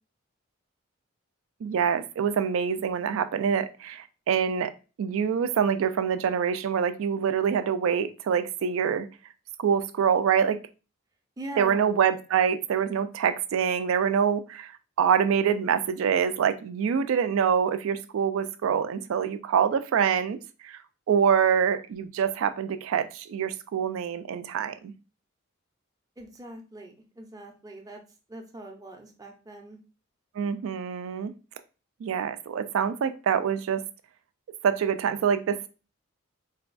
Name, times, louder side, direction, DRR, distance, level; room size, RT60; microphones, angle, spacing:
voice 1, 1.6-4.7 5.0-9.1 9.6-10.6 11.6-14.7 15.0-20.8 21.1-24.9 30.4-31.3 32.0-33.8 34.6-35.7, right 7 dB, 75° right, 0.3 m, -25 dB
voice 2, 11.4-11.9 26.2-28.0 28.3-29.8, right 1 dB, 15° right, 0.5 m, -42 dB
3.9 x 2.2 x 2.5 m
head